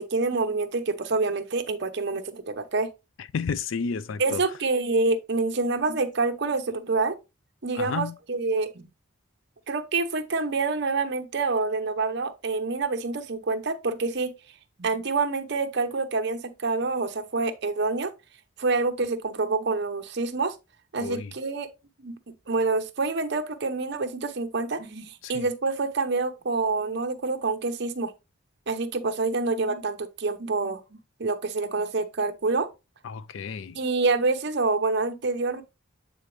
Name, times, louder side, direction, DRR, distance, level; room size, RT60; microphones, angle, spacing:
voice 1, 0.0-2.9 4.2-7.2 7.6-8.9 9.7-14.3 14.8-18.1 18.6-20.5 20.9-21.7 22.0-22.2 22.5-28.1 28.7-30.8 31.2-32.7 33.7-35.6, right 3 dB, 55° right, 0.8 m, -27 dB
voice 2, 3.3-4.4 7.7-8.1 21.0-21.3 25.2-25.4 33.0-33.8, left 5 dB, 70° left, 0.4 m, -31 dB
8.1 x 3.8 x 3.2 m
head